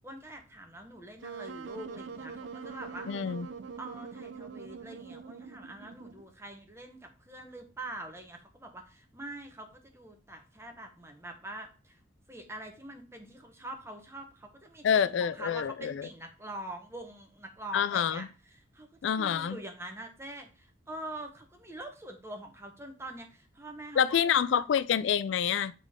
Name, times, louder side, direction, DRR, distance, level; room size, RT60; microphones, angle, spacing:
voice 1, 0.0-3.4 3.8-12.0 12.3-18.9 19.2-24.4, right 1 dB, 15° right, 1.0 m, -44 dB
Wind instrument woodwind instrument, 1.2-6.3, right 5 dB, 75° right, 0.5 m, -43 dB
voice 2, 3.1-3.5 14.8-16.1 17.7-18.3 19.0-19.6 24.0-25.7, left 8 dB, 75° left, 0.3 m, -27 dB
8.1 x 3.7 x 3.6 m
head